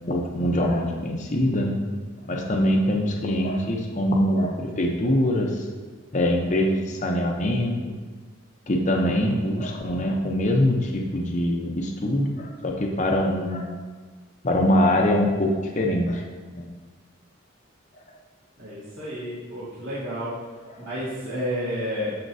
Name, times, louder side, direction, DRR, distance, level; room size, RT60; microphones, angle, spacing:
voice 1, 0.0-1.8 2.2-5.7 6.1-7.9 8.7-13.7 14.4-16.2 16.5-16.7 20.8-20.9, left 1 dB, 35° left, 0 dB, 0.7 m, -23 dB
voice 2, 18.6-20.3 20.8-22.2, equal, 65° right, -11 dB, 1.7 m, -31 dB
12.5 x 4.4 x 2.7 m, 1.4 s
head